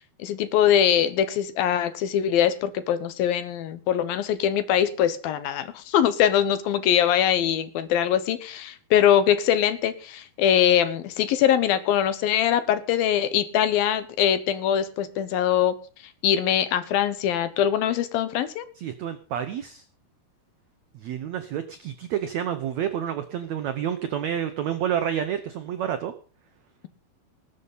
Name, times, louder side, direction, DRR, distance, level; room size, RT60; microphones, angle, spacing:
voice 1, 0.0-15.8 16.2-18.7, left 10 dB, 70° left, 12 dB, 2.8 m, -22 dB
voice 2, 18.8-19.8 20.9-26.1, right 9 dB, 85° right, 9 dB, 1.5 m, -29 dB
19.5 x 8.0 x 5.6 m, 0.39 s
omnidirectional pair, 4.5 m